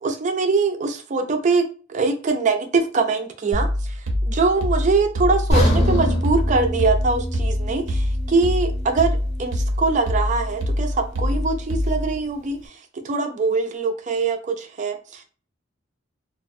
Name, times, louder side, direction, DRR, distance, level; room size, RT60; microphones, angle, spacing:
voice 1, 0.0-4.0 4.2-12.8 13.0-15.2, right 4 dB, 40° right, 6 dB, 0.3 m, -23 dB
sound 1, 3.5-12.2, left 1 dB, 90° right, 0.6 m, -25 dB
sound 2, 5.5-9.6 9.9-10.1 10.7-10.8, equal, 35° left, 0.7 m, -24 dB
2.3 x 2.0 x 2.5 m, 0.38 s
head